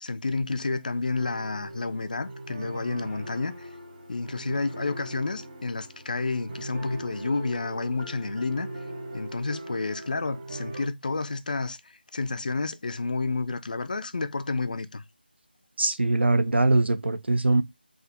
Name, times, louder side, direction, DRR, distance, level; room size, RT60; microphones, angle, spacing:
voice 1, 0.0-3.7 4.1-8.7 9.1-11.8 12.1-15.0, left 3 dB, 50° left, 0.4 m, -30 dB
sound 1, 1.2-10.9, right 2 dB, 35° right, 0.6 m, -40 dB
voice 2, 15.8-17.6, right 2 dB, 90° right, 0.5 m, -22 dB
3.5 x 2.0 x 3.4 m
figure-of-eight pair, 170°, 6 cm